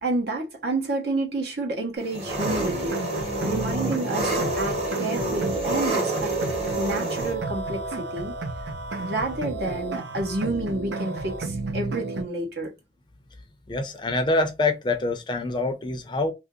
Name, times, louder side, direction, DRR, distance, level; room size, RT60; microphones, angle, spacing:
voice 1, 0.0-6.3 6.8-8.3 9.0-12.7, right 2 dB, 70° right, 1.1 m, -30 dB
Engine, 2.1-7.3, right 1 dB, 35° right, 1.2 m, -29 dB
sound 1, 2.3-12.2, right 3 dB, 85° right, 0.6 m, -31 dB
voice 2, 13.7-16.3, left 2 dB, 25° left, 0.5 m, -25 dB
2.9 x 2.7 x 3.7 m
head